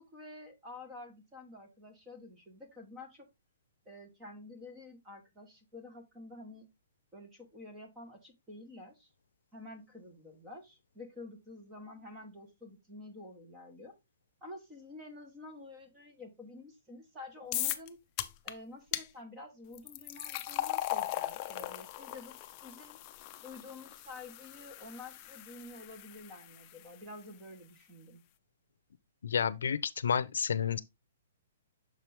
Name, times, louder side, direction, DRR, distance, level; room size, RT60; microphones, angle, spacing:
voice 1, 0.0-3.3 3.8-6.7 7.1-9.1 9.5-14.0 14.4-18.0 18.4-23.0 23.4-28.2, left 2 dB, 10° right, 1.1 m, -49 dB
sound 1, 17.5-17.9 18.2-18.5 18.9-19.1 19.7-26.9, left 14 dB, 20° left, 0.4 m, -38 dB
voice 2, 29.2-30.8, left 7 dB, 80° left, 0.5 m, -30 dB
6.6 x 4.5 x 3.3 m
hypercardioid pair, 175°, 0 cm